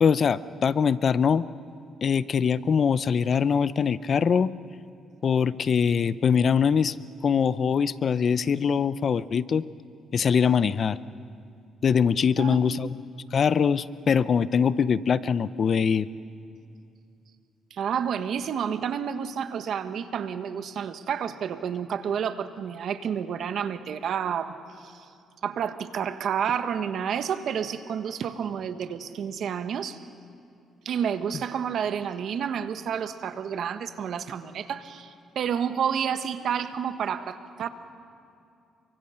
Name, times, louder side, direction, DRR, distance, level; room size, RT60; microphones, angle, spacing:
voice 1, 0.0-1.5 2.0-4.5 5.2-7.0 7.2-9.7 10.1-11.0 11.8-13.0 13.3-16.1, left 6 dB, 50° left, 16 dB, 0.6 m, -23 dB
voice 2, 12.4-12.9 17.7-25.1 25.4-30.0 30.8-37.7, right 8 dB, 65° right, 9 dB, 1.3 m, -30 dB
30.0 x 24.5 x 5.8 m, 2.5 s
cardioid pair, 90°, 0 cm